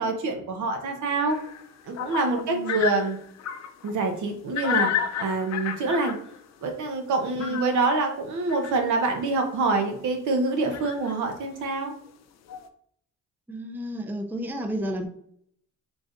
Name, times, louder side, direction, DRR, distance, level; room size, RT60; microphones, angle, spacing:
voice 1, 0.0-1.4 1.9-3.2 3.8-6.2 6.6-11.9, right 3 dB, 75° right, 4 dB, 0.9 m, -26 dB
sound 1, 1.3-3.9 4.5-6.4 7.2-8.0 8.5-8.8 9.6-9.7 10.0-10.1 10.7-11.1 12.1-12.2 12.5-12.7, left 9 dB, 60° left, 0.5 m, -31 dB
voice 2, 2.4-2.8 7.4-7.6 13.5-15.1, right 1 dB, 5° right, 5 dB, 0.4 m, -32 dB
4.0 x 3.4 x 2.5 m, 0.66 s
cardioid pair, 90°, 30 cm